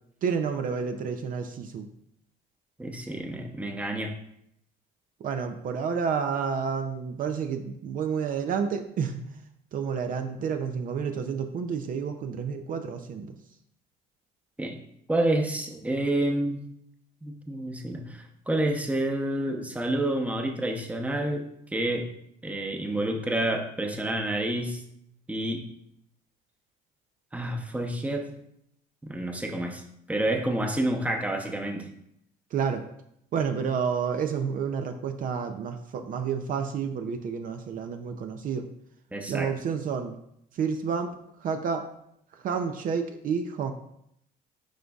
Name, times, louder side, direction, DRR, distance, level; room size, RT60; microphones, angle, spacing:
voice 1, 0.2-1.9 5.2-9.4 9.7-13.4 32.5-32.8 33.3-38.7 39.3-40.1 40.5-41.1 41.4-41.8 42.4-43.7, right 6 dB, 55° right, 7 dB, 0.5 m, -30 dB
voice 2, 2.8-4.1 14.6-14.7 15.1-16.6 17.2-21.5 21.7-22.1 22.4-24.8 25.3-25.6 27.3-28.3 29.0-29.8 30.1-31.9 39.1-39.5, right 1 dB, 10° right, 3 dB, 0.8 m, -29 dB
11.5 x 3.9 x 2.4 m, 0.75 s
cardioid pair, 110°, 17 cm